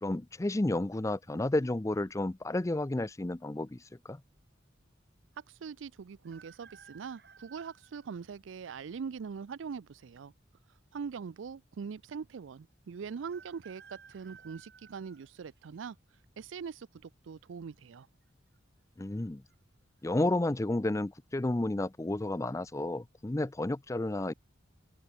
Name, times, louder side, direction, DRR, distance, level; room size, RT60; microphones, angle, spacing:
voice 1, 0.0-4.2 19.0-19.4 20.0-24.3, left 2 dB, 15° left, 0.5 m, -31 dB
voice 2, 5.5-10.3 10.9-16.0 16.4-18.1, right 6 dB, 85° right, 0.4 m, -42 dB
sound 1, 6.2-8.3 8.9-9.0 10.1-10.8 11.1-11.2 11.3-11.4 13.2-15.9 16.4-16.8 17.9-18.3 18.5-18.6 19.2-19.5 20.0-20.2, right 6 dB, 60° right, 6.4 m, -57 dB
open air
head